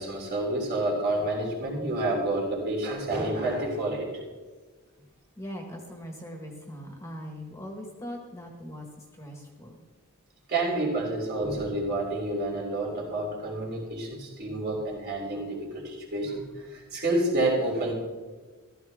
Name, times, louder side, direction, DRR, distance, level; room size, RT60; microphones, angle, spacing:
voice 1, 0.0-4.2 10.5-17.9, right 2 dB, 45° right, -2 dB, 3.3 m, -29 dB
voice 2, 5.4-9.8, equal, 15° left, 1 dB, 1.5 m, -41 dB
14.5 x 13.0 x 3.6 m, 1.4 s
head